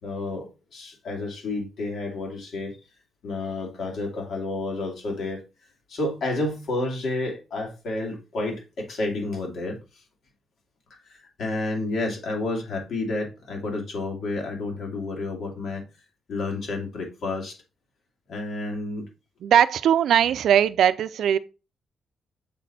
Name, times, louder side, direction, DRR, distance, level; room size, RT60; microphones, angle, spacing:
voice 1, 0.0-2.8 3.2-5.4 5.9-10.0 10.9-15.8 16.3-17.6 18.3-19.1, left 2 dB, 65° left, 2.6 m, -30 dB
voice 2, 19.4-21.4, right 9 dB, 75° right, 0.4 m, -19 dB
7.0 x 4.2 x 4.2 m
cardioid pair, 120°, 0 cm